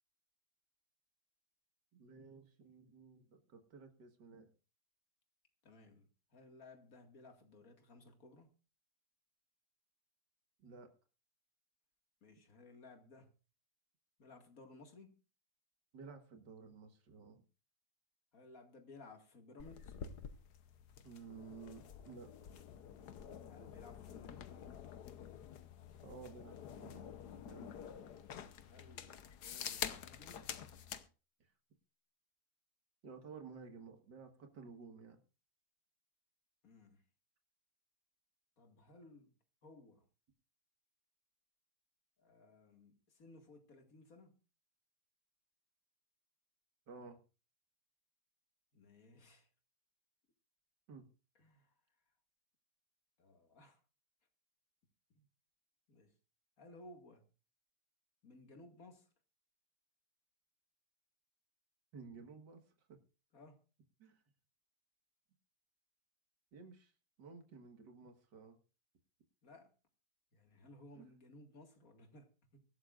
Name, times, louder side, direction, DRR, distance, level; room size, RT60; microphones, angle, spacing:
voice 1, 1.9-4.5 10.6-10.9 15.9-17.4 21.0-22.3 26.0-27.1 27.5-27.7 31.4-31.5 33.0-35.2 46.9-47.2 50.9-51.0 61.9-62.6 62.9-63.0 64.0-64.2 66.5-66.9 67.2-68.6 71.0-71.1, right 5 dB, 85° right, 2.3 m, -54 dB
voice 2, 5.6-8.5 12.2-13.3 14.2-15.2 18.3-20.0 23.5-24.5 28.2-30.5 36.6-37.0 38.6-39.3 39.6-40.0 42.2-44.4 48.7-49.5 51.4-51.7 53.2-53.8 55.2-55.3 55.9-56.1 56.6-57.3 58.2-59.1 63.3-63.6 69.4-69.7 70.3-72.6, left 2 dB, 55° left, 2.5 m, -59 dB
sound 1, 19.6-31.1, left 8 dB, 75° left, 1.5 m, -48 dB
23.5 x 12.5 x 2.5 m
omnidirectional pair, 1.8 m